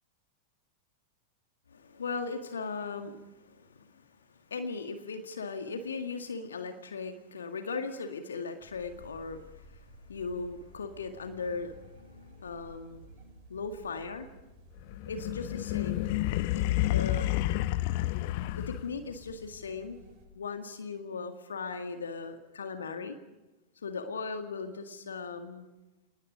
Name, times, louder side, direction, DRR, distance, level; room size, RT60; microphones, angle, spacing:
voice 1, 1.7-4.0 4.5-9.4 9.7-14.3 15.1-16.1 16.6-17.3 18.5-20.0 20.4-23.2 23.8-25.7, left 4 dB, 70° left, 7 dB, 1.9 m, -38 dB
sound 1, 8.6-20.3, left 1 dB, 40° right, 7.9 m, -54 dB
sound 2, 14.9-19.1, left 16 dB, 50° left, 0.8 m, -30 dB
29.0 x 20.0 x 5.0 m, 1.0 s
figure-of-eight pair, 90°, 0 cm